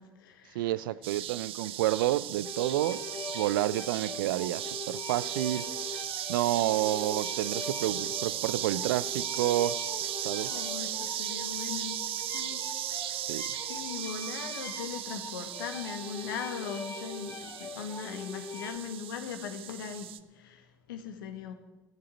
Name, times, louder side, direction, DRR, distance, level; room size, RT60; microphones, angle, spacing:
voice 1, 0.0-0.7 10.3-21.5, left 7 dB, 80° left, 1.6 m, -40 dB
voice 2, 0.5-5.7 6.3-9.8 10.2-10.6 13.3-13.5, right 14 dB, 75° right, 0.5 m, -30 dB
sound 1, 1.0-20.2, right 12 dB, 55° right, 0.8 m, -37 dB
sound 2, 2.4-18.8, left 3 dB, 25° left, 2.9 m, -42 dB
12.5 x 7.7 x 9.9 m
hypercardioid pair, 60°, 11 cm